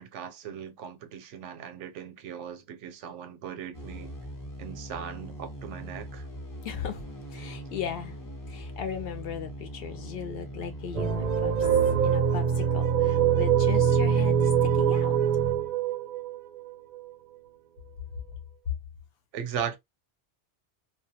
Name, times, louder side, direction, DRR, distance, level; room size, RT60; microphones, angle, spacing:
voice 1, 0.0-4.1 4.6-6.3 19.3-19.8, right 8 dB, 90° right, 0.9 m, -38 dB
sound 1, 3.7-12.2, equal, 25° left, 0.5 m, -41 dB
voice 2, 6.6-7.0 7.3-8.1 8.5-11.5 12.0-15.2, left 8 dB, 65° left, 0.7 m, -37 dB
sound 2, 10.9-17.1, right 8 dB, 55° right, 0.4 m, -24 dB
2.2 x 2.1 x 2.7 m
omnidirectional pair, 1.2 m